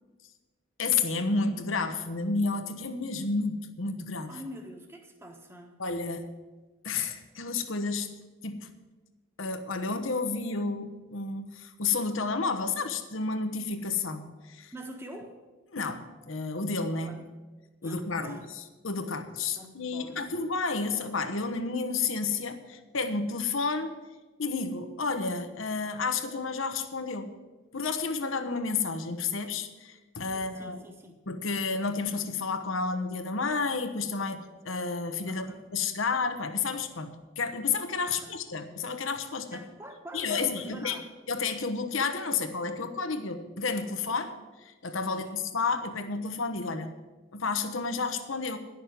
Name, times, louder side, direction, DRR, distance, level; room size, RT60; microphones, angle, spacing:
voice 1, 0.8-4.3 5.8-6.3 6.8-8.1 8.4-8.7 9.4-14.7 15.7-17.2 17.8-18.4 18.8-24.0 24.4-27.4 27.7-30.8 31.3-37.1 37.4-39.6 40.1-41.0 41.3-47.0 47.3-48.6, left 4 dB, 80° left, 8 dB, 1.1 m, -31 dB
voice 2, 4.3-5.8 14.7-15.4 16.9-17.3 17.8-18.5 19.6-20.2 30.3-31.2 35.3-35.7 38.0-38.3 39.5-41.1 45.1-45.3, right 1 dB, 10° right, 3 dB, 1.2 m, -45 dB
11.0 x 6.5 x 9.1 m, 1.2 s
head